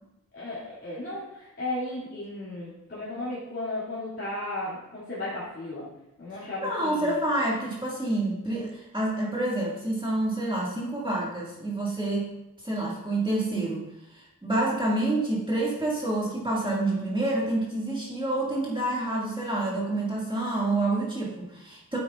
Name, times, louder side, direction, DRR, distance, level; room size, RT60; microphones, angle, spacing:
voice 1, 0.3-5.9 6.2-7.2, left 1 dB, 35° left, -10 dB, 2.6 m, -35 dB
voice 2, 6.3-12.3 12.6-13.8 14.1-22.0, right 2 dB, 15° right, -6 dB, 2.0 m, -28 dB
9.6 x 8.2 x 2.4 m, 0.92 s
wide cardioid pair, 100°, 34 cm